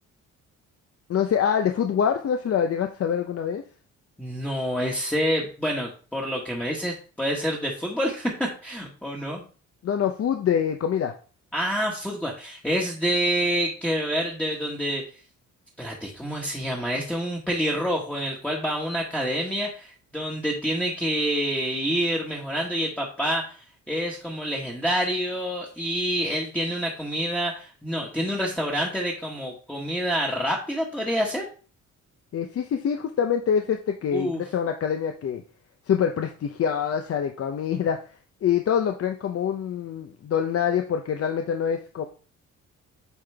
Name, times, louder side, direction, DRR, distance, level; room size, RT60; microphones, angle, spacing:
voice 1, 1.1-3.6 9.8-11.1 32.3-35.4 35.9-38.0 38.4-42.1, left 8 dB, 50° left, 5 dB, 0.7 m, -25 dB
voice 2, 4.2-9.4 11.5-15.0 15.8-31.4 34.1-34.4, equal, 5° left, -3 dB, 1.4 m, -27 dB
8.4 x 3.8 x 3.4 m, 0.38 s
cardioid pair, 90°, 30 cm